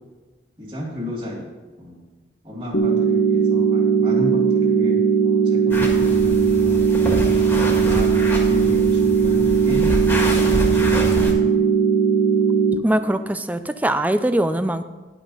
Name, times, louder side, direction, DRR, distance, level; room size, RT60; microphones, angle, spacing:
voice 1, 0.6-1.5 1.8-2.0 2.4-6.8 7.6-9.9 11.4-11.7, left 1 dB, 30° right, -3 dB, 2.6 m, -33 dB
sound 1, 2.7-12.7, right 6 dB, 60° left, 0.8 m, -18 dB
sound 2, 5.7-11.3, equal, 10° left, 1.7 m, -26 dB
voice 2, 12.8-14.8, right 1 dB, 10° right, 10 dB, 0.4 m, -21 dB
11.0 x 6.0 x 5.5 m, 1.3 s
head